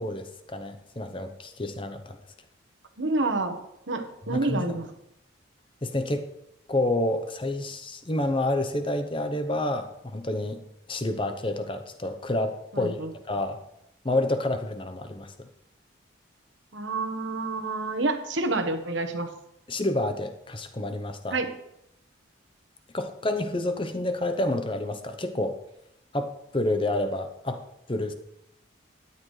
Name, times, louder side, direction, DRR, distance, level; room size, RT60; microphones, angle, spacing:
voice 1, 0.0-2.2 4.3-4.7 5.8-6.2 6.7-10.6 10.9-13.0 13.3-13.6 14.0-15.5 19.7-21.4 22.9-25.6 26.1-27.6 27.9-28.1, left 1 dB, 25° left, 8 dB, 0.8 m, -29 dB
voice 2, 3.0-3.6 3.9-4.9 12.7-13.1 16.7-19.3 21.3-21.5, right 2 dB, 70° right, 6 dB, 1.2 m, -28 dB
13.0 x 10.0 x 3.2 m, 0.81 s
head